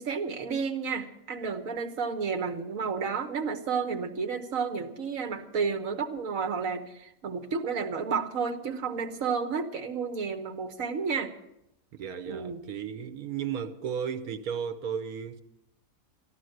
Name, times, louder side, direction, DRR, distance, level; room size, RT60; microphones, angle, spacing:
voice 1, 0.0-11.3 12.3-12.6, right 5 dB, 65° right, 1.6 m, -31 dB
voice 2, 11.9-15.4, right 7 dB, 85° right, 1.4 m, -34 dB
14.0 x 11.5 x 7.9 m
omnidirectional pair, 1.5 m